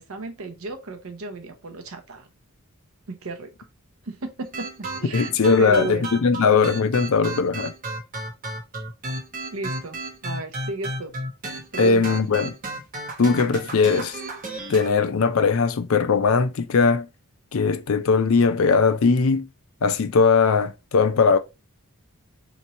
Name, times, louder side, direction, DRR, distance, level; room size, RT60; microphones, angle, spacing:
voice 1, 0.0-2.3 3.1-3.5 4.0-6.2 9.5-11.1 11.7-12.3, right 3 dB, 65° right, 0.7 m, -34 dB
sound 1, 4.4-14.9, right 2 dB, 40° right, 1.0 m, -33 dB
voice 2, 5.1-7.7 11.8-12.5 13.2-14.2 14.7-17.1 17.5-19.5 19.8-21.4, left 5 dB, 65° left, 0.4 m, -19 dB
2.9 x 2.6 x 4.0 m
head